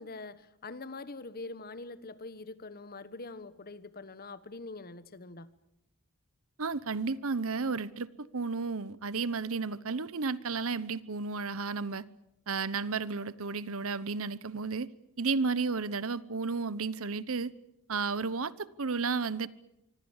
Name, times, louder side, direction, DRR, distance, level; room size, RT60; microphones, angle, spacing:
voice 1, 0.0-5.5, left 3 dB, 45° left, 1.3 m, -44 dB
voice 2, 6.6-12.0 12.5-14.9 15.2-17.5 17.9-19.5, right 4 dB, 65° right, 1.0 m, -32 dB
26.0 x 24.5 x 7.3 m
head